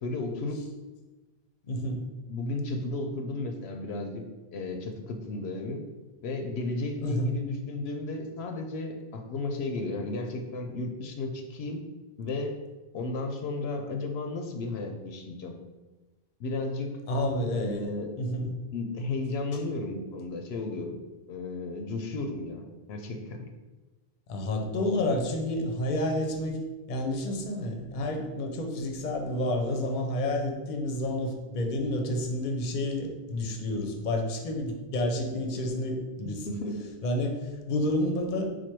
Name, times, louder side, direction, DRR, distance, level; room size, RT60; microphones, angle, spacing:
voice 1, 0.0-0.6 2.3-4.2 4.5-5.8 6.2-11.8 12.2-12.5 12.9-15.6 16.4-16.9 17.5-18.2 18.7-21.0 21.3-22.6 22.9-23.5 36.2-36.9, left 2 dB, 85° left, 4 dB, 0.8 m, -33 dB
voice 2, 1.7-2.0 7.0-7.3 17.1-17.9 18.2-18.5 24.3-26.6 26.9-36.5 37.0-38.5, left 1 dB, 55° left, 2 dB, 0.7 m, -30 dB
4.3 x 2.2 x 4.5 m, 1.2 s
omnidirectional pair, 1.0 m